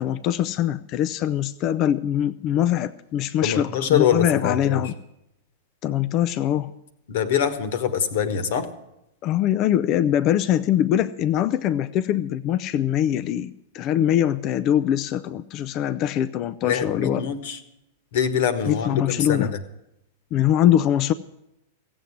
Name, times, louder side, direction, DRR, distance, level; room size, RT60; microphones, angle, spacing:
voice 1, 0.0-4.9 5.8-6.7 9.2-17.2 18.7-19.5 20.3-21.1, left 11 dB, 40° left, 13 dB, 0.5 m, -23 dB
voice 2, 3.4-4.9 7.1-8.7 16.6-17.6 18.1-19.6, left 7 dB, 60° left, 12 dB, 1.4 m, -24 dB
16.0 x 7.9 x 9.7 m, 0.86 s
hypercardioid pair, 100°, 0 cm